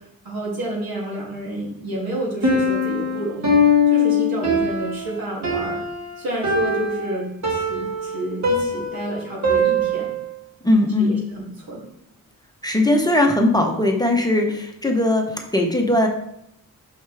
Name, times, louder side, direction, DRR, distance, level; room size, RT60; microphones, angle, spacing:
voice 1, 0.2-3.6 3.9-5.8 6.2-10.1 11.0-11.9, right 1 dB, 85° right, -5 dB, 2.7 m, -30 dB
Piano, 2.4-10.3, left 2 dB, 50° right, 1.7 m, -21 dB
voice 2, 10.6-11.2 12.6-16.1, left 1 dB, 10° left, 1 dB, 0.8 m, -19 dB
6.3 x 5.6 x 3.4 m, 0.76 s
wide cardioid pair, 115°, 36 cm